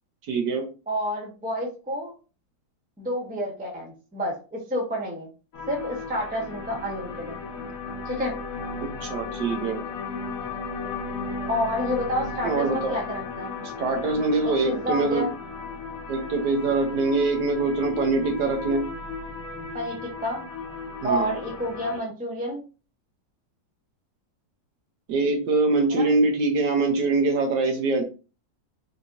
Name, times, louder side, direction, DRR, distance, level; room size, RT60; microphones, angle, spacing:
voice 1, 0.3-0.6 9.0-9.8 12.4-12.9 13.6-15.2 16.1-18.8 21.0-21.3 25.1-28.0, right 3 dB, 70° right, 3 dB, 1.3 m, -23 dB
voice 2, 0.9-2.1 3.0-5.3 5.7-7.4 8.0-8.4 11.5-13.5 14.6-15.3 19.7-20.4 21.0-22.6 25.9-26.1, equal, 10° right, -1 dB, 0.4 m, -29 dB
sound 1, 5.5-22.0, left 4 dB, 60° left, 1.0 m, -35 dB
4.0 x 2.8 x 2.5 m, 0.34 s
omnidirectional pair, 2.0 m